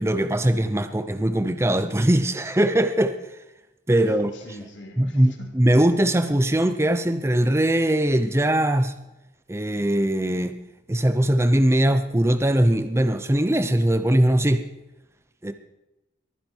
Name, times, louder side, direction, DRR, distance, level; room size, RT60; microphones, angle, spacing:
voice 1, 0.0-3.2 3.9-4.3 5.0-8.9 9.5-10.5 10.9-14.7 15.4-15.5, right 1 dB, 15° right, 9 dB, 0.7 m, -21 dB
voice 2, 4.0-5.6, left 1 dB, 90° left, 1 dB, 3.1 m, -43 dB
22.5 x 10.0 x 4.5 m, 0.98 s
head